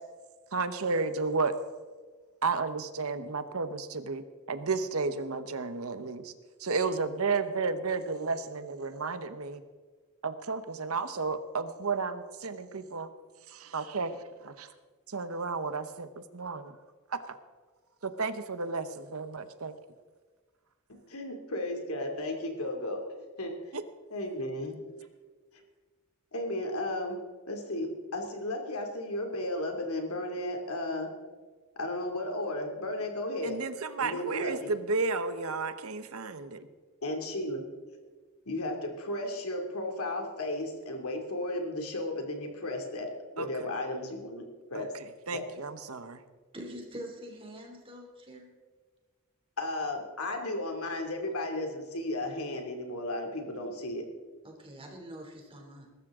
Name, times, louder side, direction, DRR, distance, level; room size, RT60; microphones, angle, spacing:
voice 1, 0.5-1.5 2.4-6.3 6.6-9.6 10.2-13.1 13.5-14.2 14.4-14.7 15.1-16.8 17.1-17.4 18.0-19.7 23.7-23.8 33.4-36.7 43.4-43.7 44.7-44.9 45.3-46.2, right 4 dB, 80° right, 11 dB, 1.1 m, -32 dB
voice 2, 20.9-23.6 24.1-25.0 26.3-27.2 27.5-31.1 31.8-33.6 34.0-34.7 37.0-37.6 38.5-43.1 43.4-44.9 45.3-45.4 49.6-54.1, left 1 dB, 85° left, 3 dB, 2.8 m, -34 dB
voice 3, 46.5-48.5 54.4-55.9, equal, 25° right, 1 dB, 3.0 m, -44 dB
21.5 x 12.5 x 3.8 m, 1.4 s
head